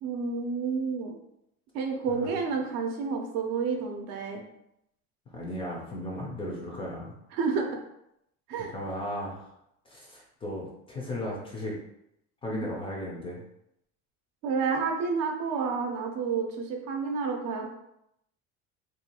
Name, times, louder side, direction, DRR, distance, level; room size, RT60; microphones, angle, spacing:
voice 1, 0.0-1.2 1.7-4.4 7.3-7.8 8.5-8.7 12.5-12.7 14.4-17.7, right 5 dB, 60° right, 2 dB, 0.6 m, -30 dB
voice 2, 5.3-7.1 8.7-9.5 9.9-11.7 12.4-13.4, left 1 dB, 20° left, -3 dB, 0.4 m, -36 dB
2.6 x 2.2 x 2.8 m, 0.80 s
cardioid pair, 160°, 30 cm